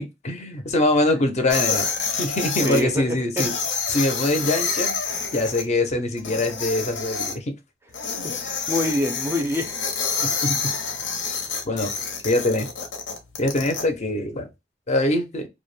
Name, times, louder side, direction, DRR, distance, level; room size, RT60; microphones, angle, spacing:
voice 1, 0.0-1.9 2.2-3.5 3.9-5.0 5.3-7.6 10.2-10.7 11.6-11.9 12.2-12.7 13.4-14.5 14.9-15.5, left 2 dB, 40° left, 0.5 m, -23 dB
sound 1, 1.5-2.8 3.4-5.6 6.2-7.3 7.9-13.8, left 5 dB, 80° left, 0.7 m, -28 dB
voice 2, 2.6-3.5 8.2-9.7, left 1 dB, 15° right, 0.4 m, -26 dB
2.2 x 2.0 x 3.1 m
head